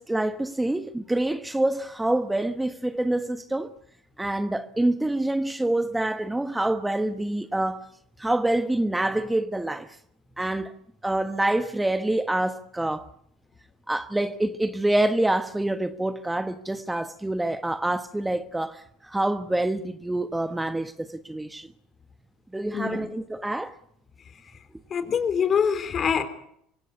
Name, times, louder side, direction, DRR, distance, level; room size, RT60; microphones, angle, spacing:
voice 1, 0.0-3.7 4.2-7.9 8.2-10.0 10.4-10.7 11.0-13.1 13.9-21.7 22.5-23.8, right 1 dB, 10° right, 1.2 m, -26 dB
voice 2, 22.7-23.1 24.9-26.2, left 7 dB, 40° left, 3.7 m, -24 dB
25.5 x 16.5 x 8.4 m
supercardioid pair, 90°, 0 cm